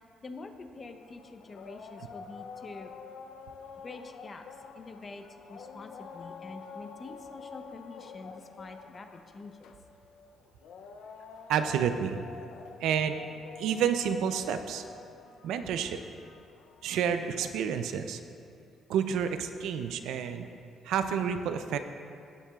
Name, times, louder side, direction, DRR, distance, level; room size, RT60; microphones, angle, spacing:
voice 1, 0.2-2.9 3.8-4.4 4.7-9.7, left 3 dB, 35° left, 6 dB, 0.8 m, -46 dB
sound 1, 0.8-17.2, left 5 dB, 80° left, 0.5 m, -48 dB
voice 2, 11.5-12.2 12.8-13.2 13.6-14.8 15.4-16.0 16.8-18.2 18.9-20.5 20.8-21.8, right 8 dB, 85° right, 9 dB, 0.5 m, -29 dB
16.0 x 7.1 x 2.4 m, 2.5 s
cardioid pair, 90°, 0 cm